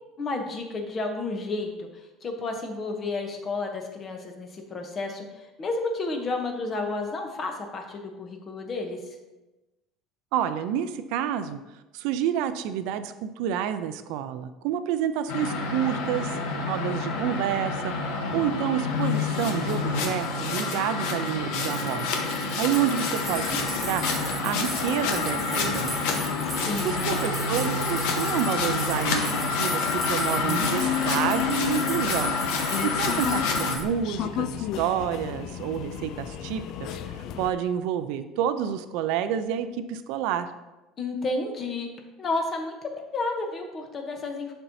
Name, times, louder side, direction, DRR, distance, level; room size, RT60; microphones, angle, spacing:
voice 1, 0.2-9.0 26.6-27.2 41.0-41.9 42.2-44.5, left 3 dB, 25° left, 3 dB, 0.9 m, -31 dB
voice 2, 10.3-11.6 11.9-17.9 18.3-26.0 26.8-32.3 32.8-40.5, right 9 dB, 70° right, 11 dB, 0.5 m, -29 dB
sound 1, 15.3-33.8, left 4 dB, 75° left, 1.0 m, -28 dB
sound 2, 21.7-33.8, right 2 dB, 10° right, 0.8 m, -37 dB
sound 3, 23.3-37.5, left 10 dB, 50° left, 0.3 m, -35 dB
11.0 x 4.5 x 2.7 m, 1.1 s
cardioid pair, 165°, 0 cm